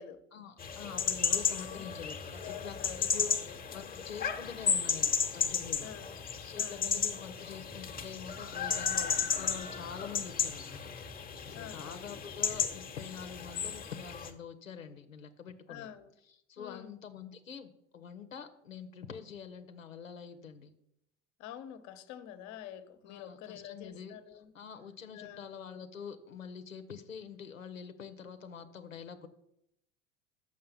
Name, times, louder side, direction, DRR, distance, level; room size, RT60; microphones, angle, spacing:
voice 1, 0.3-5.9 6.4-10.8 11.5-15.9 16.5-20.7 23.1-29.3, left 7 dB, 90° left, 0.7 m, -46 dB
sound 1, 0.6-14.3, left 6 dB, 20° left, 1.0 m, -34 dB
voice 2, 2.4-4.0 5.8-6.2 6.5-6.9 11.5-12.0 15.7-16.1 16.6-16.9 21.4-24.5 25.1-25.5, left 10 dB, 45° left, 0.9 m, -48 dB
6.5 x 5.6 x 6.9 m
figure-of-eight pair, 75°, 39 cm